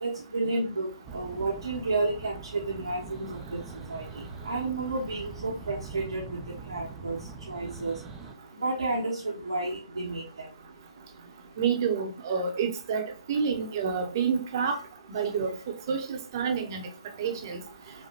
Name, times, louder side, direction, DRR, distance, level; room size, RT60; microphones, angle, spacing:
voice 1, 0.0-0.9 1.1-3.6 3.9-6.4 6.7-7.2 7.5-8.0 8.6-10.5, right 2 dB, 75° right, 0.8 m, -31 dB
sound 1, 1.0-8.3, right 4 dB, 10° right, 0.4 m, -43 dB
voice 2, 11.6-14.8 15.1-15.6 15.9-16.8 17.2-17.6, right 6 dB, 40° right, 0.8 m, -28 dB
5.2 x 2.2 x 2.8 m
figure-of-eight pair, 130°, 3 cm